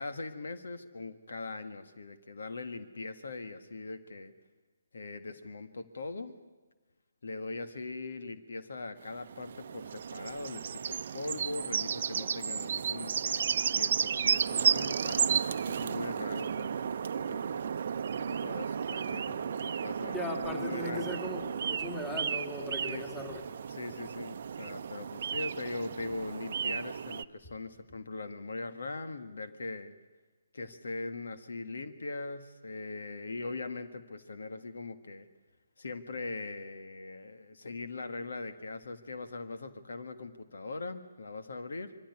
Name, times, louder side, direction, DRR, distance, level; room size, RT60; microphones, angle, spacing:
voice 1, 0.0-4.3 4.9-6.4 7.2-17.5 18.2-21.1 22.9-23.1 23.7-29.9 30.5-35.3 35.8-42.0, left 3 dB, 70° left, 9 dB, 1.8 m, -41 dB
sound 1, 9.0-27.2, right 7 dB, 55° right, 0.7 m, -33 dB
voice 2, 20.1-23.3, equal, 10° left, 4 dB, 2.5 m, -38 dB
23.5 x 15.0 x 9.8 m, 1.2 s
hypercardioid pair, 150°, 0 cm